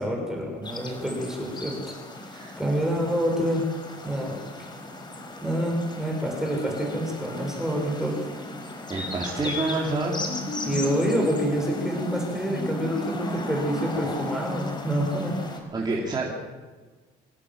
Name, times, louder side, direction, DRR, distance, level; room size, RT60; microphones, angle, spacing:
voice 1, 0.0-1.9 2.2-3.7 4.0-4.4 5.4-8.2 9.4-9.5 10.6-15.4, equal, 5° right, -1 dB, 6.7 m, -27 dB
sound 1, 0.6-15.6, left 2 dB, 25° left, 5.2 m, -37 dB
voice 2, 8.9-10.1 10.6-10.7 15.7-16.3, right 3 dB, 25° right, -3 dB, 4.0 m, -28 dB
sound 2, 9.9-14.8, left 1 dB, 45° left, 6.4 m, -34 dB
25.5 x 18.0 x 7.7 m, 1.4 s
cardioid pair, 110°, 17 cm